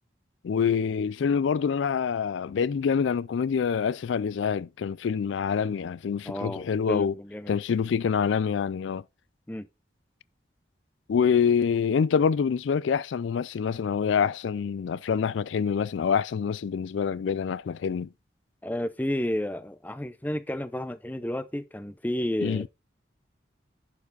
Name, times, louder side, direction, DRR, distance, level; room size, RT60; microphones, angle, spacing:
voice 1, 0.4-7.1 7.5-9.0 11.1-18.1 22.4-22.7, left 6 dB, 90° left, 0.4 m, -26 dB
voice 2, 6.2-7.6 9.5-9.7 18.6-22.7, left 1 dB, 10° left, 0.5 m, -31 dB
11.5 x 4.8 x 4.0 m
head